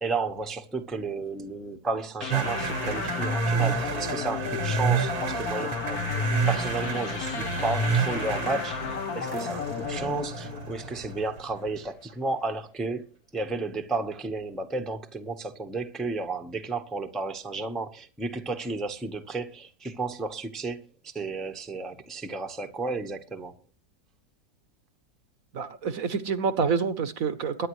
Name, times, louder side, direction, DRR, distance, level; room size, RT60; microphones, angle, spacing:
voice 1, 0.0-6.0 6.5-13.1 13.3-23.5, right 3 dB, ahead, 0.8 m, -32 dB
sound 1, 2.2-11.6, left 7 dB, 65° left, 1.4 m, -34 dB
sound 2, 2.3-11.7, right 4 dB, 90° right, 2.1 m, -29 dB
voice 2, 25.5-27.7, right 5 dB, 60° right, 1.2 m, -27 dB
22.5 x 10.0 x 3.1 m
omnidirectional pair, 1.8 m